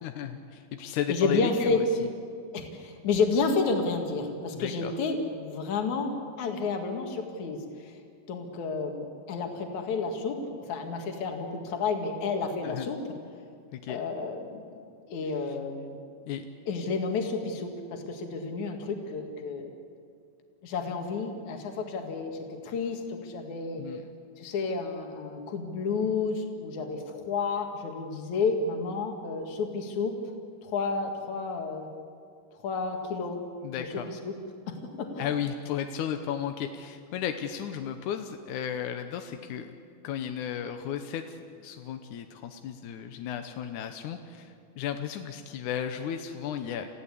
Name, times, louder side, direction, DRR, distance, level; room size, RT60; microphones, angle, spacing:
voice 1, 0.0-1.8 4.5-4.9 12.6-12.9 13.7-14.0 16.3-16.5 23.8-24.0 33.6-34.1 35.2-39.7 40.0-41.4 41.6-46.9, left 9 dB, 70° left, 6 dB, 2.0 m, -34 dB
voice 2, 0.8-1.8 2.5-6.1 6.4-7.9 8.3-13.0 13.9-14.7 15.1-16.0 16.7-19.7 20.6-22.4 22.6-23.8 24.4-30.2 30.6-31.9 32.5-33.4 33.8-34.3 34.7-35.3, left 4 dB, 55° left, 3 dB, 3.1 m, -31 dB
29.5 x 15.5 x 8.4 m, 2.3 s
omnidirectional pair, 4.4 m